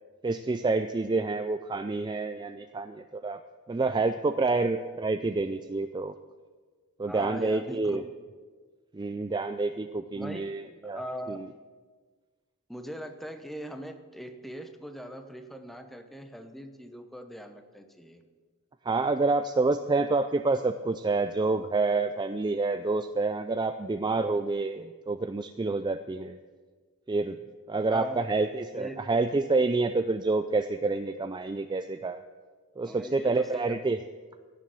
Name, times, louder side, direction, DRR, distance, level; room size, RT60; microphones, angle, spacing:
voice 1, 0.2-3.4 3.7-6.1 7.0-8.0 8.9-11.5 18.8-26.4 27.1-27.4 27.7-32.2 32.8-34.0, right 3 dB, 20° right, 9 dB, 0.3 m, -28 dB
voice 2, 7.1-8.0 10.1-10.4 10.9-11.4 12.7-18.2 27.9-28.2 28.7-29.0 32.8-33.8, equal, ahead, 7 dB, 0.9 m, -40 dB
16.5 x 6.9 x 7.6 m, 1.4 s
head